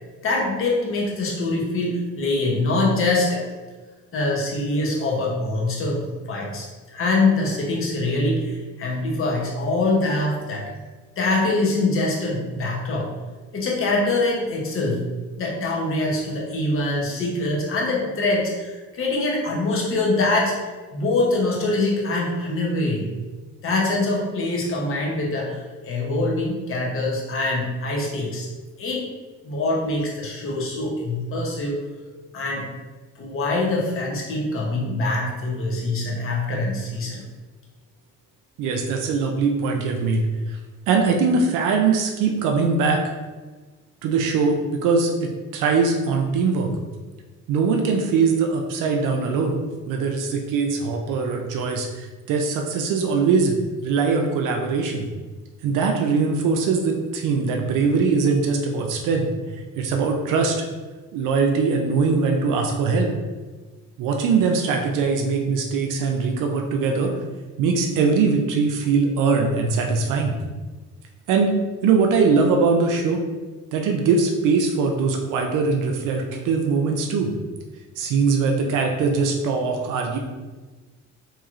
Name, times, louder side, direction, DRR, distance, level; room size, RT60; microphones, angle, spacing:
voice 1, 0.2-3.4 4.1-6.7 6.9-10.7 11.2-13.1 13.5-15.0 15.4-20.5 20.9-23.1 23.6-28.5 28.8-29.1 29.4-31.8 32.3-32.7 33.2-37.2, left 2 dB, 45° left, -3 dB, 0.8 m, -24 dB
voice 2, 38.6-40.6 40.9-43.0 44.0-46.7 47.5-49.6 49.9-53.5 53.8-55.1 55.6-59.3 59.8-60.6 61.1-63.1 64.0-67.1 67.6-70.4 71.3-71.6 71.8-73.2 73.7-77.3 78.0-80.2, right 4 dB, 85° right, 2 dB, 0.5 m, -21 dB
3.0 x 2.8 x 2.4 m, 1.3 s
cardioid pair, 110°, 31 cm